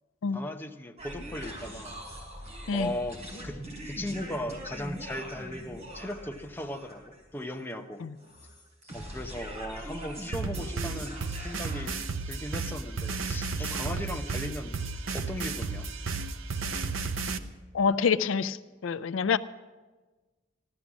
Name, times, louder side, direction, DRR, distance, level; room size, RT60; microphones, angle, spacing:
voice 1, 0.3-1.9 2.7-3.2 3.4-3.6 3.8-8.0 8.9-12.0 12.3-14.8 15.1-15.9, left 1 dB, 10° left, 3 dB, 0.8 m, -37 dB
sound 1, 1.0-11.8, equal, 35° right, 3.9 m, -42 dB
sound 2, 10.3-17.4, right 4 dB, 85° right, 0.8 m, -33 dB
voice 2, 17.7-18.6 18.8-19.4, left 6 dB, 80° left, 14 dB, 0.4 m, -26 dB
15.0 x 12.5 x 6.1 m, 1.3 s
head